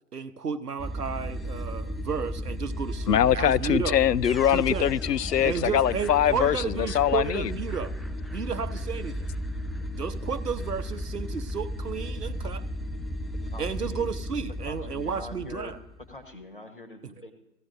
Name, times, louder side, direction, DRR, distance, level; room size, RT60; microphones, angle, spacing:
voice 1, 0.1-4.0 4.5-4.9 5.4-7.9 8.3-9.3 9.9-12.6 13.6-15.8, right 6 dB, 80° right, 0.9 m, -32 dB
sound 1, 0.8-16.2, equal, ahead, 0.4 m, -34 dB
voice 2, 3.1-7.5, left 10 dB, 85° left, 0.5 m, -23 dB
voice 3, 13.5-14.1 14.6-15.8 16.1-17.3, left 2 dB, 35° left, 1.1 m, -44 dB
18.0 x 14.0 x 2.6 m
figure-of-eight pair, 175°, 47 cm